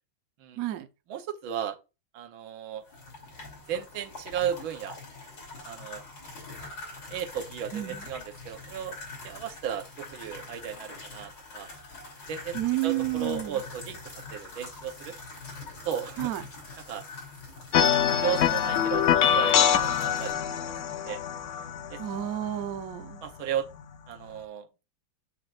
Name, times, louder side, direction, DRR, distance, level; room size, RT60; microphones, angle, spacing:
voice 1, 0.6-0.9 7.7-8.0 12.5-13.6 16.2-16.4 22.0-23.2, right 14 dB, 60° right, 0.9 m, -30 dB
voice 2, 1.1-1.8 2.1-2.8 3.7-5.0 5.6-6.0 7.1-9.0 9.2-11.7 12.3-12.6 12.8-15.1 15.9-16.3 16.9-17.0 18.2-21.2 21.9-22.0 23.2-23.7 24.1-24.7, right 9 dB, 80° right, 1.7 m, -35 dB
sound 1, 2.8-20.3, left 3 dB, 60° left, 3.6 m, -44 dB
sound 2, 17.7-23.1, left 9 dB, 85° left, 0.6 m, -24 dB
6.9 x 6.6 x 2.4 m
omnidirectional pair, 2.2 m